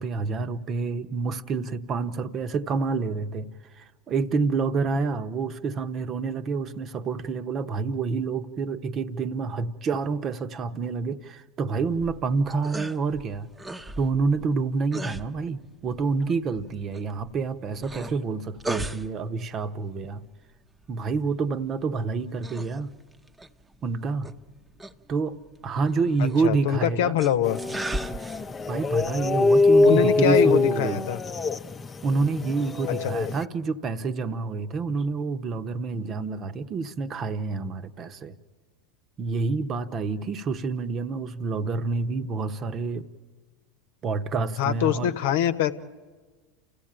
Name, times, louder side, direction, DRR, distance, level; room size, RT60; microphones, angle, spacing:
voice 1, 0.0-3.5 3.8-13.5 14.0-20.2 20.9-22.9 23.8-24.3 25.1-25.4 25.6-27.1 28.7-31.1 32.0-38.3 39.2-43.1 44.0-45.1, right 4 dB, 35° right, 10 dB, 1.1 m, -28 dB
sound 1, 11.9-30.6, right 1 dB, 10° right, 1.0 m, -40 dB
voice 2, 26.2-27.6 29.8-31.2 44.6-45.7, left 10 dB, 70° left, 10 dB, 1.0 m, -24 dB
sound 2, 27.4-33.4, left 3 dB, 25° left, 0.8 m, -23 dB
29.5 x 15.0 x 9.0 m, 1.4 s
hypercardioid pair, 85°, 0 cm